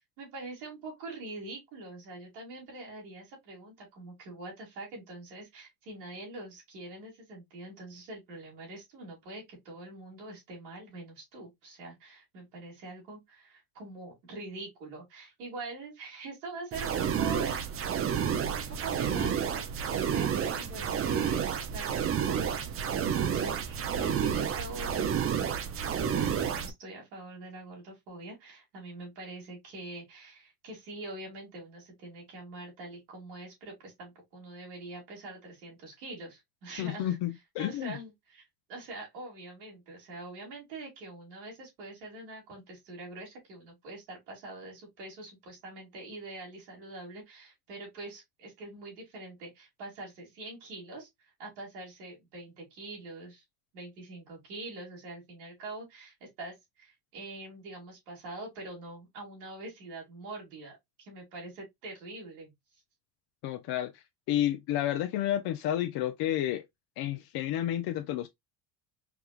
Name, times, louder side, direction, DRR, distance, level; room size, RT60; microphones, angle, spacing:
voice 1, 0.2-21.4 21.7-25.5 26.1-37.2 37.6-53.4 53.7-62.5, right 2 dB, 85° right, 2.4 m, -44 dB
sound 1, 16.7-26.7, right 8 dB, 30° right, 0.5 m, -30 dB
voice 2, 36.8-38.0 63.4-66.6 67.0-68.3, left 12 dB, 50° left, 0.6 m, -31 dB
4.7 x 2.3 x 2.3 m
supercardioid pair, 85°, 49 cm